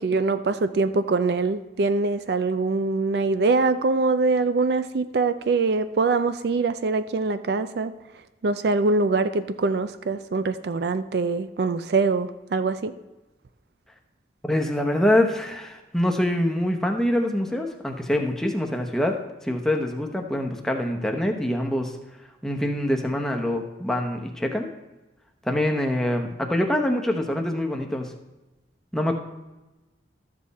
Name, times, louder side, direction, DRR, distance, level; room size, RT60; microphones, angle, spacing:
voice 1, 0.0-7.9 8.4-12.9, right 3 dB, 60° right, 12 dB, 0.4 m, -23 dB
voice 2, 14.4-22.0 22.4-24.7 25.4-28.1 28.9-29.2, left 1 dB, 5° left, 2 dB, 0.8 m, -25 dB
13.0 x 7.6 x 4.1 m, 1.1 s
head